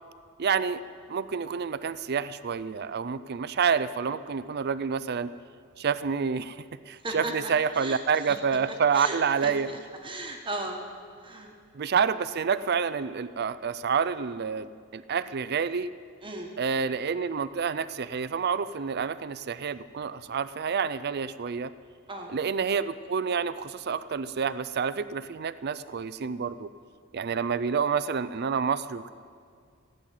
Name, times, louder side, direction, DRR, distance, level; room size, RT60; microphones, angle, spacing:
voice 1, 0.4-0.8 1.1-5.3 5.8-6.6 6.9-9.7 11.7-15.9 16.6-21.7 22.3-26.7 27.1-29.1, right 6 dB, 50° right, 15 dB, 0.5 m, -28 dB
voice 2, 7.0-8.0 8.3-8.4 8.9-9.2 9.4-10.8 11.2-11.5 16.2-16.5 22.1-22.3, right 2 dB, 25° right, 2 dB, 1.4 m, -36 dB
16.0 x 7.8 x 9.4 m, 2.1 s
head